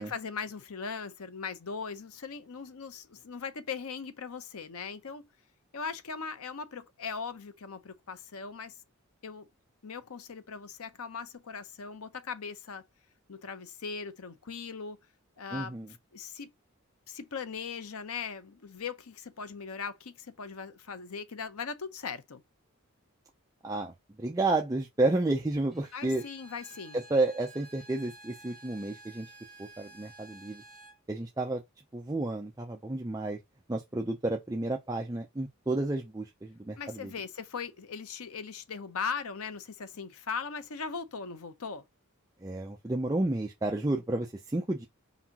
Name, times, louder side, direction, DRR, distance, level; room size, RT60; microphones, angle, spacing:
voice 1, 0.0-5.3 5.7-8.7 9.2-9.5 9.8-12.8 13.3-15.0 15.4-15.9 16.1-16.5 17.1-22.4 25.9-27.0 36.8-41.8, left 5 dB, 75° left, 0.7 m, -39 dB
voice 2, 15.5-15.9 23.6-23.9 24.2-26.2 26.9-29.3 29.6-30.6 31.1-31.6 31.9-33.4 33.7-37.1 42.4-44.9, right 2 dB, 15° right, 0.5 m, -31 dB
Bowed string instrument, 25.7-31.0, right 2 dB, ahead, 1.8 m, -52 dB
4.8 x 3.9 x 2.8 m
head